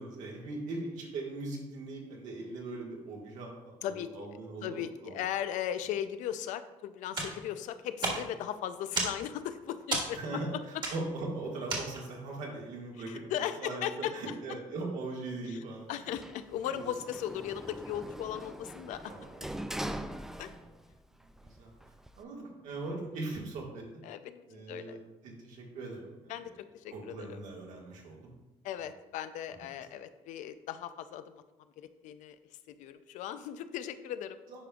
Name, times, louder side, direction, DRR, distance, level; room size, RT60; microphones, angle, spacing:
voice 1, 0.0-5.2 10.1-15.9 16.7-16.9 19.1-19.4 20.6-20.7 21.2-21.7 22.2-24.0 24.5-25.0 25.2-26.5 26.9-28.3 29.5-29.6 34.5-34.6, right 2 dB, 80° right, -1 dB, 1.7 m, -40 dB
voice 2, 3.8-4.3 4.6-10.4 12.9-14.3 15.5-15.6 15.9-19.1 20.4-20.5 24.0-25.0 26.3-27.4 28.6-31.4 31.8-32.4 32.7-34.4, left 10 dB, 85° left, 12 dB, 0.4 m, -37 dB
sound 1, 7.1-12.3, right 2 dB, 40° right, 1.6 m, -36 dB
Sliding door, 16.1-21.0 21.3-22.2, right 1 dB, 5° right, 0.3 m, -42 dB
9.7 x 5.1 x 2.3 m, 1.1 s
cardioid pair, 110°, 13 cm